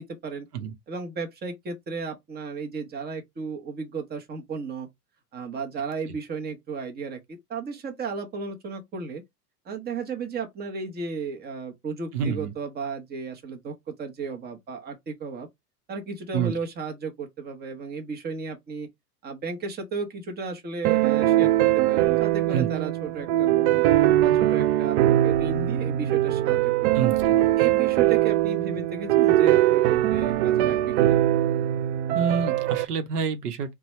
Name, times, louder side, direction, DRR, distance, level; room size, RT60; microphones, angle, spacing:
voice 1, 0.0-0.5 0.9-4.9 5.3-7.2 7.5-9.2 9.7-15.5 15.9-18.9 19.2-23.9 24.2-31.2, right 4 dB, 20° right, 1.0 m, -34 dB
voice 2, 12.1-12.5 16.3-16.5 22.5-22.7 26.9-27.4 32.1-33.7, right 7 dB, 75° right, 1.0 m, -27 dB
sound 1, 20.8-32.8, right 13 dB, 45° right, 0.4 m, -21 dB
4.0 x 2.4 x 3.1 m
hypercardioid pair, 95°, 47 cm